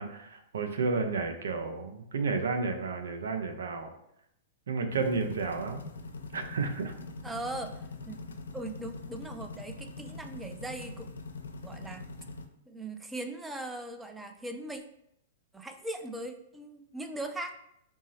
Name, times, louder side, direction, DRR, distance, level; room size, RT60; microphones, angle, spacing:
voice 1, 0.0-3.9 4.7-5.9 6.3-6.9, right 4 dB, 80° right, 6 dB, 0.5 m, -31 dB
sound 1, 4.9-12.5, left 3 dB, 90° left, 0.4 m, -43 dB
voice 2, 7.2-8.2 8.5-11.1 11.6-12.1 12.7-14.8 15.5-17.6, right 1 dB, 10° right, 6 dB, 0.4 m, -39 dB
3.5 x 2.0 x 4.0 m, 0.77 s
hypercardioid pair, 120°, 0 cm